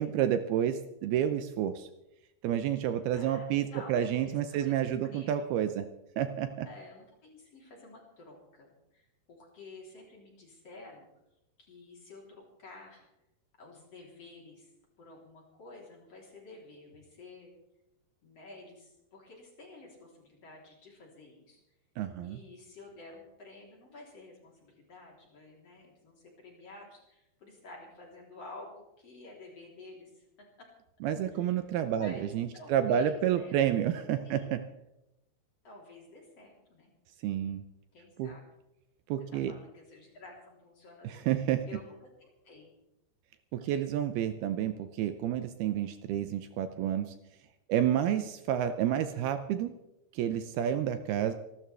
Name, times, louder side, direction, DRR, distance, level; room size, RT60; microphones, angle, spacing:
voice 1, 0.0-1.9 2.4-5.9 6.2-6.7 22.0-22.4 31.0-34.6 37.2-37.6 38.2-38.3 39.1-39.5 41.0-41.6 43.5-47.1 47.7-49.7 50.1-51.3, right 10 dB, 75° right, 9 dB, 2.5 m, -30 dB
voice 2, 3.1-5.4 6.6-11.1 11.6-13.1 13.6-14.7 15.0-17.5 18.2-21.6 22.2-30.7 31.3-31.6 31.9-32.3 32.5-33.7 34.0-34.5 35.6-36.9 37.9-38.5 39.3-41.3 41.6-42.7 43.6-43.9, left 2 dB, 40° left, -2 dB, 4.3 m, -51 dB
27.0 x 12.5 x 3.4 m, 0.88 s
omnidirectional pair, 4.8 m